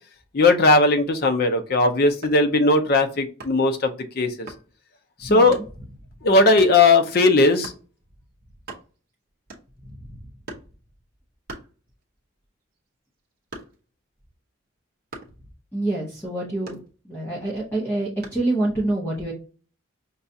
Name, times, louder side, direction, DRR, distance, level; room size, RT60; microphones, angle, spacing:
voice 1, 0.3-4.5 5.2-5.6 6.2-7.7, left 2 dB, 45° left, 7 dB, 0.5 m, -18 dB
sound 1, 2.2-2.5 3.4-3.7 4.5-4.7 5.5-5.7 6.6-6.8 7.6-7.9 8.3-8.4 8.6-9.1 9.5-9.9 10.5-10.8 11.5-12.2 12.6-14.0 15.1-15.4 16.7-17.3 18.2-18.5, right 3 dB, 45° right, 0.7 m, -41 dB
voice 2, 15.7-16.8 17.1-19.3, right 2 dB, 10° left, -4 dB, 0.7 m, -26 dB
5.4 x 2.3 x 2.6 m, 0.37 s
head